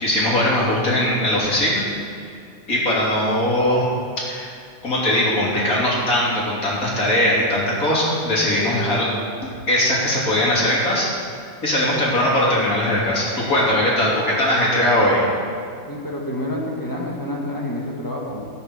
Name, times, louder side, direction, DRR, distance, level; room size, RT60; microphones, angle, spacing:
voice 1, 0.0-1.8 2.2-2.3 2.7-3.9 4.2-4.5 4.8-9.1 9.7-11.1 11.6-15.3, left 1 dB, 40° left, -6 dB, 3.5 m, -20 dB
voice 2, 15.9-18.5, left 1 dB, 10° left, -2 dB, 1.6 m, -28 dB
17.0 x 5.9 x 6.8 m, 2.3 s
omnidirectional pair, 2.4 m